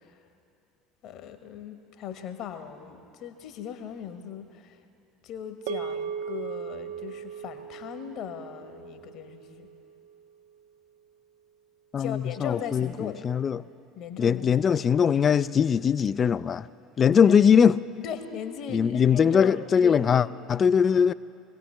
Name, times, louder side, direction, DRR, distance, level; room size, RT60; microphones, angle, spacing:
voice 1, 1.0-4.8 5.2-9.7 12.0-13.2 14.0-14.4 17.1-17.4 18.0-19.6 19.8-20.3, left 8 dB, 50° left, 1.1 m, -38 dB
sound 1, 5.7-10.2, right 7 dB, 60° right, 0.4 m, -38 dB
voice 2, 11.9-13.6 14.2-16.7 17.0-17.8 18.7-21.1, left 7 dB, 30° left, 0.3 m, -21 dB
24.0 x 17.0 x 3.2 m
figure-of-eight pair, 65°, 0 cm